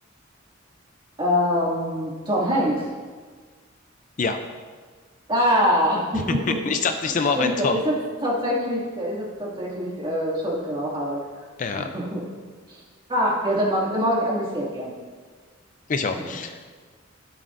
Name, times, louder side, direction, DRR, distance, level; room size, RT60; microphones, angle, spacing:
voice 1, 1.2-2.9 5.3-6.6 7.1-8.0 8.2-11.2 11.8-12.2 12.7-12.8 13.1-14.9, equal, 25° right, -5 dB, 2.2 m, -24 dB
voice 2, 6.1-7.8 11.6-11.9 15.9-16.6, left 4 dB, 40° left, 7 dB, 0.4 m, -25 dB
14.0 x 7.6 x 2.6 m, 1.5 s
head